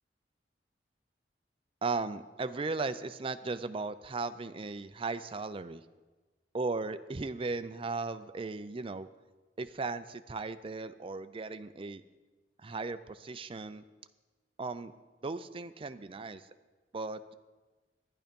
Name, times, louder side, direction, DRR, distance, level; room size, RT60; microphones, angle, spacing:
voice 1, 1.8-5.8 6.5-9.1 9.6-12.0 12.6-13.8 14.6-14.9 15.2-16.4 16.9-17.3, right 3 dB, 30° right, 12 dB, 0.5 m, -36 dB
11.0 x 10.5 x 5.2 m, 1.2 s
head